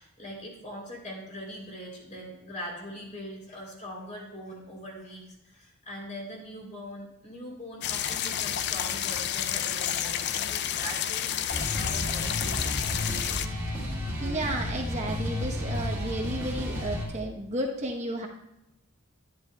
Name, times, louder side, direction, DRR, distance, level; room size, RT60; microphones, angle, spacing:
voice 1, 0.0-13.1, equal, 40° left, -2 dB, 3.2 m, -42 dB
sound 1, 7.8-13.5, left 10 dB, 55° left, 0.4 m, -30 dB
sound 2, 11.5-17.1, left 1 dB, 10° right, 1.8 m, -32 dB
voice 2, 14.2-18.3, right 1 dB, 35° right, 0 dB, 0.9 m, -32 dB
10.5 x 10.5 x 2.3 m, 0.90 s
head